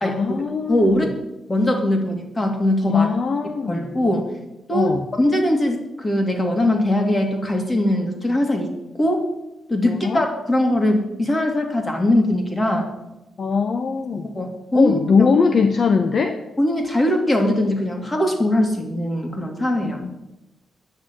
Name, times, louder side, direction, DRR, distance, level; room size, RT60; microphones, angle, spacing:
voice 1, 0.0-1.0 2.9-3.9 4.7-5.0 9.8-10.2 13.4-14.3 14.7-16.3 19.8-20.1, left 5 dB, 45° left, 7 dB, 0.8 m, -21 dB
voice 2, 0.7-1.2 1.5-3.1 3.7-4.3 4.7-4.9 5.2-8.7 9.0-9.3 9.7-12.9 14.3-15.3 16.6-20.0, left 1 dB, 20° left, 3 dB, 2.4 m, -21 dB
10.5 x 6.3 x 9.0 m, 0.96 s
cardioid pair, 120°, 0 cm